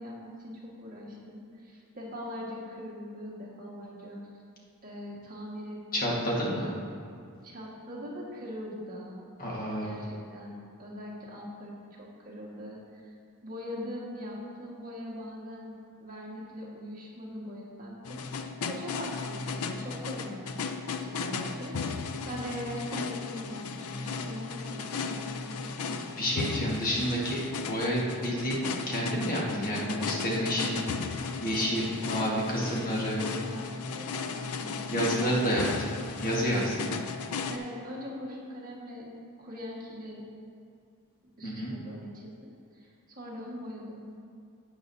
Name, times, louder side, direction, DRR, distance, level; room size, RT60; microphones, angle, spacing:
voice 1, 0.0-4.2 4.8-6.3 7.4-9.2 9.8-13.1 13.4-15.7 16.0-18.4 18.7-20.4 21.0-21.8 22.2-26.0 32.2-32.3 32.5-35.9 37.5-39.1 39.4-40.2 41.4-42.5 42.8-42.9 43.2-44.1, equal, 40° right, -4 dB, 1.7 m, -41 dB
voice 2, 5.9-6.7 9.4-10.0 26.2-30.8 31.4-33.2 34.9-36.0 36.2-36.9 41.4-41.7, equal, 40° left, -4 dB, 1.6 m, -29 dB
sound 1, 18.0-37.6, left 4 dB, 85° left, 0.5 m, -35 dB
11.5 x 8.6 x 2.7 m, 2.3 s
head